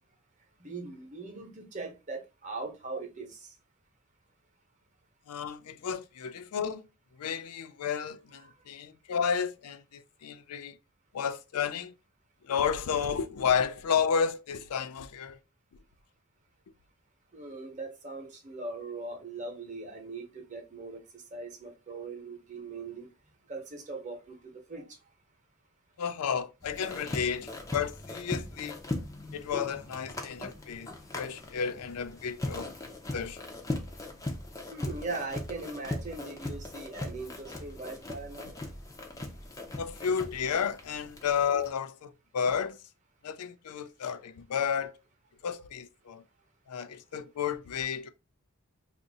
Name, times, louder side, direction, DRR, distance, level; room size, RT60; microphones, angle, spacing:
voice 1, 0.6-3.5 8.4-8.5 17.3-23.1 23.5-25.0 34.7-38.5, right 3 dB, 35° right, 0.9 m, -40 dB
voice 2, 5.3-6.8 7.2-10.8 11.1-11.9 12.4-15.4 26.0-28.8 29.3-32.7 33.1-33.4 39.8-42.8 43.2-45.0 45.4-46.2 46.7-48.1, left 7 dB, 90° left, 0.4 m, -32 dB
sound 1, 26.6-41.7, left 2 dB, 15° left, 0.5 m, -39 dB
2.6 x 2.5 x 3.9 m
head